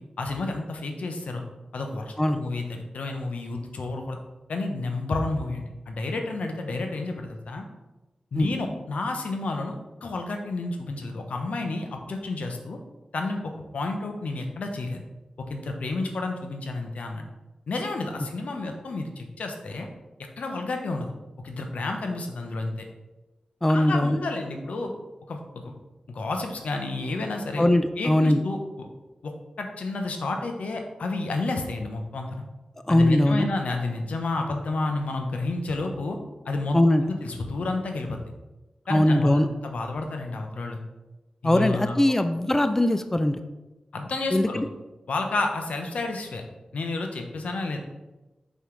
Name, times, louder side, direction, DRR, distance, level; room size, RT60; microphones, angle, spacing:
voice 1, 0.2-1.4 1.7-4.2 4.5-7.7 8.3-12.8 13.1-15.0 15.4-17.2 17.7-19.9 20.4-22.7 23.7-24.9 25.3-25.7 26.1-28.9 29.2-29.3 29.6-32.4 32.9-36.2 36.4-36.8 37.1-38.2 38.9-40.8 41.4-42.0 43.9-44.6 45.1-46.4 46.7-47.8, left 2 dB, 80° left, 4 dB, 0.8 m, -30 dB
voice 2, 23.6-24.2 27.6-28.4 32.9-33.5 36.7-37.0 38.9-39.5 41.4-43.4 44.3-44.7, left 1 dB, 15° left, 9 dB, 0.4 m, -21 dB
6.0 x 5.5 x 3.2 m, 1.1 s
cardioid pair, 55°, 2 cm